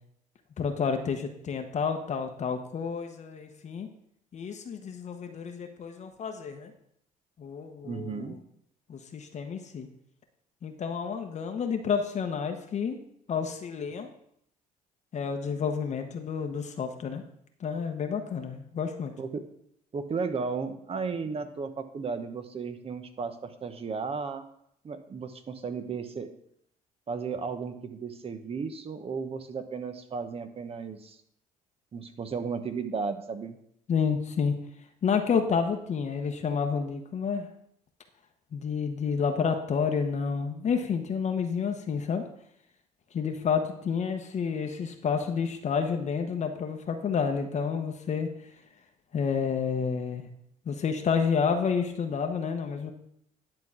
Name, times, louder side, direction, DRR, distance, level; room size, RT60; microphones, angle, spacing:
voice 1, 0.6-3.9 4.3-6.7 7.4-8.3 8.9-9.9 10.6-13.0 13.3-14.1 15.1-17.2 17.6-19.1 33.9-34.5 35.0-37.5 38.5-42.2 43.1-48.3 49.1-50.3 50.6-52.9, left 6 dB, 45° left, 5 dB, 1.0 m, -30 dB
voice 2, 7.8-8.4 19.2-19.4 19.9-24.4 24.8-26.3 27.1-31.2 31.9-33.6, right 5 dB, 40° right, 8 dB, 1.1 m, -34 dB
10.5 x 3.9 x 7.3 m, 0.71 s
cardioid pair, 95°, 16 cm